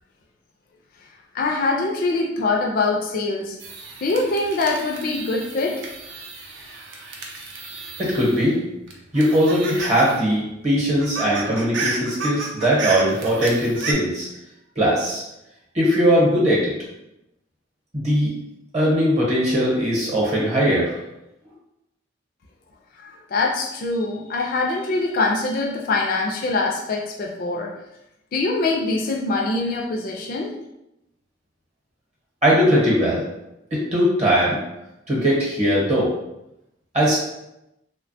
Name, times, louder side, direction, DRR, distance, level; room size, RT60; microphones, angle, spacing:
voice 1, 1.3-3.6 4.0-5.8 23.0-27.7 28.3-30.5, left 3 dB, 50° left, 0 dB, 0.3 m, -23 dB
sound 1, 3.6-8.5 8.9-10.2 10.5-10.6 10.9-13.9, right 3 dB, 70° right, 0.5 m, -32 dB
voice 2, 8.0-8.6 9.1-14.3 14.8-15.2 15.7-16.7 17.9-18.3 18.7-21.0 32.4-33.2 33.7-34.6 35.1-36.1 36.9-37.2, equal, 35° right, -5 dB, 0.8 m, -20 dB
3.1 x 2.1 x 2.6 m, 0.88 s
head